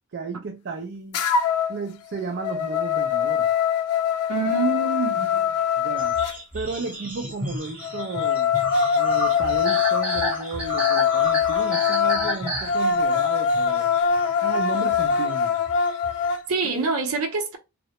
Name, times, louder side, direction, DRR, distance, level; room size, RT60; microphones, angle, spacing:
voice 1, 0.1-1.2 1.7-3.5 5.8-6.2 6.5-8.5 9.0-13.9 14.4-15.6 16.7-16.9, right 4 dB, 55° right, 0.4 m, -33 dB
sound 1, 1.1-1.8 2.2-6.4 7.8-16.4, left 7 dB, 80° left, 0.3 m, -23 dB
voice 2, 4.3-5.6 16.5-17.6, right 3 dB, 80° right, 0.7 m, -26 dB
sound 2, 6.0-16.4, equal, 5° right, 0.8 m, -32 dB
2.3 x 2.1 x 2.9 m
head